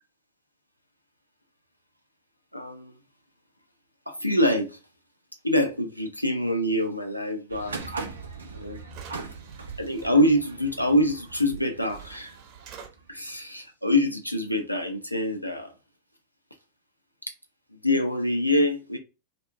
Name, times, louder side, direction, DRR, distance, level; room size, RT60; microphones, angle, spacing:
voice 1, 2.5-2.9 4.1-4.8 5.4-7.8 8.5-8.8 9.8-12.4 13.1-15.7 17.2-17.3 17.7-19.0, left 1 dB, 90° left, 0.4 m, -25 dB
sound 1, 7.5-13.3, right 4 dB, 75° right, 0.5 m, -40 dB
sound 2, 8.3-8.4 8.8-10.1 11.5-11.6 11.9-12.9, right 8 dB, 35° right, 0.8 m, -47 dB
2.6 x 2.1 x 2.4 m
figure-of-eight pair, 90°, 0 cm